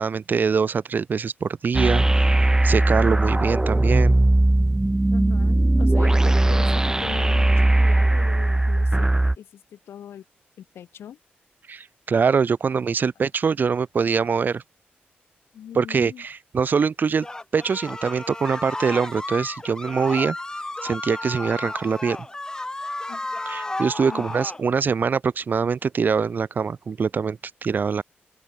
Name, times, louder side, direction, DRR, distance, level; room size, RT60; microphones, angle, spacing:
voice 1, 0.0-2.4 2.6-4.2 11.7-14.6 15.7-17.3 17.5-20.4 20.8-22.2 23.5-28.0, right 5 dB, 50° right, 0.6 m, -23 dB
sound 1, 1.7-9.4, right 2 dB, 15° right, 0.8 m, -19 dB
voice 2, 5.1-10.2 10.6-11.2 15.5-16.2 23.1-23.3 24.1-24.4, left 10 dB, 85° left, 7.4 m, -40 dB
sound 2, 17.2-24.6, left 2 dB, 15° left, 0.7 m, -33 dB
open air
cardioid pair, 65°, 4 cm